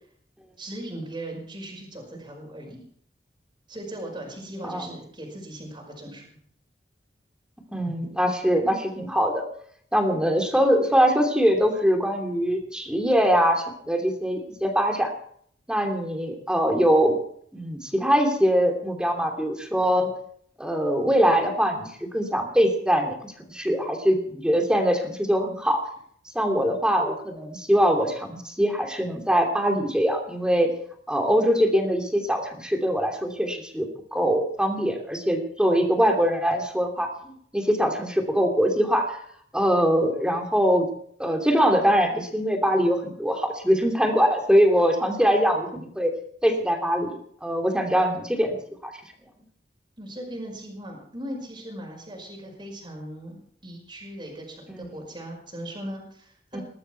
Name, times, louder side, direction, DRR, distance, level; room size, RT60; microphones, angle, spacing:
voice 1, 0.6-2.8 3.7-6.3 50.0-56.6, right 1 dB, 25° right, 0 dB, 5.4 m, -38 dB
voice 2, 7.7-9.4 9.9-15.1 15.7-17.2 17.5-20.1 20.6-25.8 26.3-30.7 31.1-39.2 39.5-40.9 41.2-46.1 46.4-48.6 48.8-48.9 54.7-54.8 56.5-56.6, equal, 5° right, 3 dB, 2.8 m, -23 dB
20.5 x 13.0 x 4.5 m, 0.62 s
head